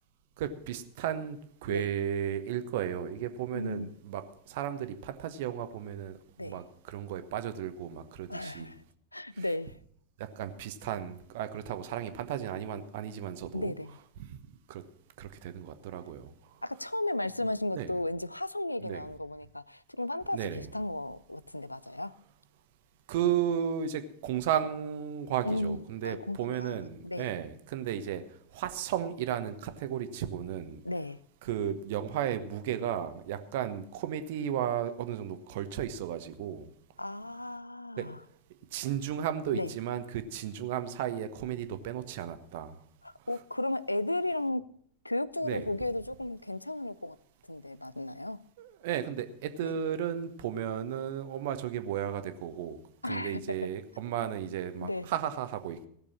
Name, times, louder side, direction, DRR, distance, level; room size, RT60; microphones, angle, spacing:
voice 1, 0.4-8.7 9.4-9.5 10.2-13.7 14.2-14.4 14.7-14.8 15.2-16.3 17.7-17.9 18.8-19.0 20.3-20.7 23.1-28.2 28.5-30.8 31.4-36.7 38.0-38.1 38.7-42.8 45.4-45.7 48.6-52.8 53.0-55.9, right 9 dB, 50° right, 1.1 m, -34 dB
voice 2, 3.5-4.0 6.4-6.6 8.3-8.8 9.1-9.8 13.5-14.0 16.6-22.1 25.4-26.8 27.0-27.3 30.8-31.2 37.0-38.2 39.5-39.7 43.0-44.7 45.0-47.2 47.5-48.5 49.6-49.7 53.0-53.6 54.8-55.1, left 1 dB, 85° left, 0.4 m, -34 dB
16.5 x 6.8 x 7.1 m
figure-of-eight pair, 90°, 0 cm